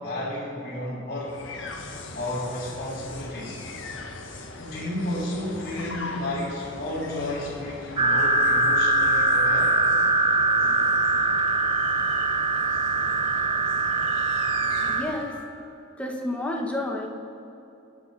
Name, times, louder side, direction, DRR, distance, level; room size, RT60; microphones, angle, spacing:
voice 1, 0.0-1.4 2.1-3.6 4.6-9.8, left 1 dB, 55° left, -10 dB, 3.3 m, -32 dB
sound 1, 1.2-15.4, left 2 dB, 85° left, 1.4 m, -40 dB
sound 2, 8.0-15.0, right 2 dB, 30° right, 0.9 m, -22 dB
voice 2, 14.9-15.3 16.0-17.1, left 1 dB, 5° left, -1 dB, 1.5 m, -30 dB
23.0 x 9.6 x 4.2 m, 2.7 s
head